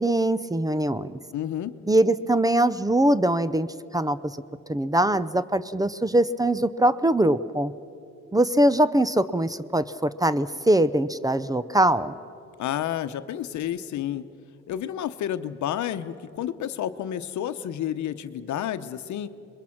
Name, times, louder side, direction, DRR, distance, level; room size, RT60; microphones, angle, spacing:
voice 1, 0.0-1.1 1.9-3.7 3.9-4.4 4.7-7.7 8.3-12.1, right 1 dB, 10° right, 15 dB, 0.6 m, -22 dB
voice 2, 1.3-1.7 12.6-14.2 14.7-19.3, left 10 dB, 70° left, 11 dB, 1.0 m, -30 dB
26.5 x 22.0 x 6.0 m, 2.6 s
cardioid pair, 90°, 30 cm